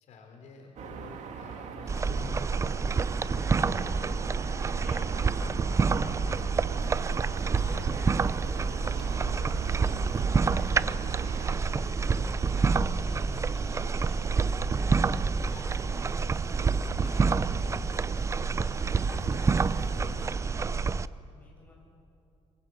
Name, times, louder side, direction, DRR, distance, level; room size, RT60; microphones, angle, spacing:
voice 1, 0.0-2.6 3.1-4.6 4.9-5.5 5.9-11.3 11.7-14.1 14.3-20.9, left 4 dB, 70° left, 2 dB, 3.5 m, -49 dB
sound 1, 0.8-11.6, right 8 dB, 70° right, 1.9 m, -38 dB
sound 2, 1.9-21.1, right 4 dB, 25° right, 0.5 m, -28 dB
voice 2, 3.2-3.5 4.8-5.2 18.5-19.4 21.3-21.8, left 1 dB, 15° left, -3 dB, 8.0 m, -55 dB
sound 3, 6.8-20.3, right 2 dB, 55° right, 4.4 m, -48 dB
24.0 x 23.0 x 7.7 m, 2.7 s
cardioid pair, 135°, 13 cm